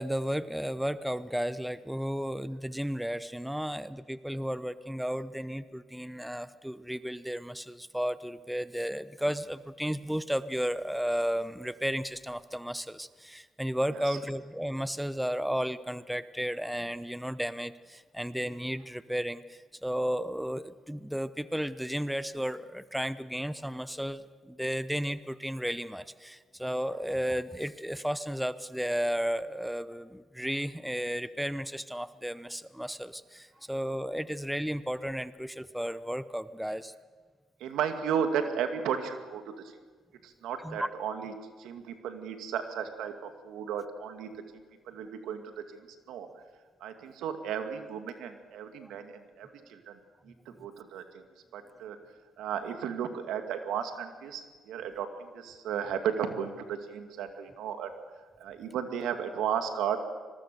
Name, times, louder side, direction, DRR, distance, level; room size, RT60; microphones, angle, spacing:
voice 1, 0.0-36.9 40.6-40.9 48.8-48.9, equal, ahead, 14 dB, 0.8 m, -33 dB
voice 2, 37.6-39.4 40.2-41.3 41.6-44.3 44.9-45.4 45.7-45.8 46.1-46.3 46.8-49.9 50.3-51.2 51.5-52.0 52.4-57.9 58.4-60.0, right 8 dB, 85° right, 6 dB, 2.4 m, -34 dB
26.0 x 21.5 x 7.0 m, 1.5 s
cardioid pair, 90°, 0 cm